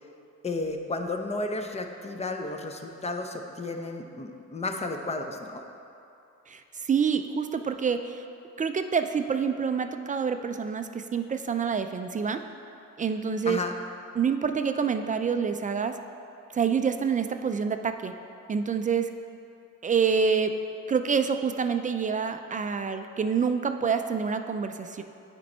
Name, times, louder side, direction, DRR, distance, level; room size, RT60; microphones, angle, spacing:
voice 1, 0.4-5.6 13.5-13.7, left 2 dB, 20° left, 5 dB, 0.6 m, -33 dB
voice 2, 6.5-8.2 8.6-12.4 13.0-13.6 14.2-16.0 16.5-18.1 18.5-19.1 19.8-20.5 20.9-25.0, right 6 dB, 25° right, 8 dB, 0.3 m, -27 dB
9.3 x 4.4 x 4.3 m, 2.7 s
cardioid pair, 90°, 30 cm